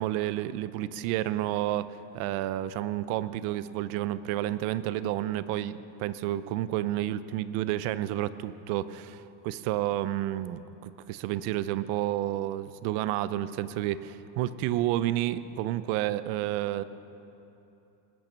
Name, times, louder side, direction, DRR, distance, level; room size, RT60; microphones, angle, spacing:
voice 1, 0.0-16.8, right 13 dB, 85° right, 15 dB, 0.7 m, -30 dB
19.0 x 9.1 x 6.7 m, 2.9 s
cardioid pair, 170°, 41 cm